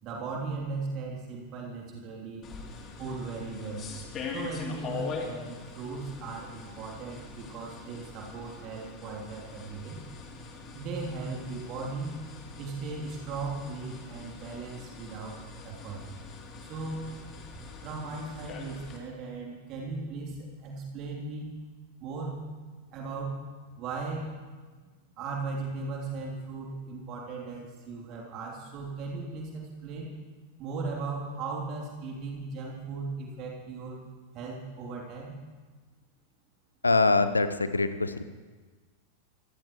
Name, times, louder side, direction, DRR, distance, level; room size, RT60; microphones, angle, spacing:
voice 1, 0.0-2.5 3.0-3.9 4.3-10.0 10.7-12.2 12.6-15.4 15.6-16.0 16.6-17.1 17.8-21.5 22.0-22.5 22.9-23.4 23.8-24.3 24.8-24.9 25.2-30.1 30.6-34.0 34.3-35.4, right 3 dB, 40° right, -1 dB, 3.2 m, -37 dB
sound 1, 2.4-19.0, left 4 dB, 30° left, 3.1 m, -43 dB
voice 2, 36.8-38.2, left 3 dB, 80° left, 12 dB, 0.8 m, -24 dB
25.5 x 18.0 x 3.2 m, 1.4 s
figure-of-eight pair, 90°, 0 cm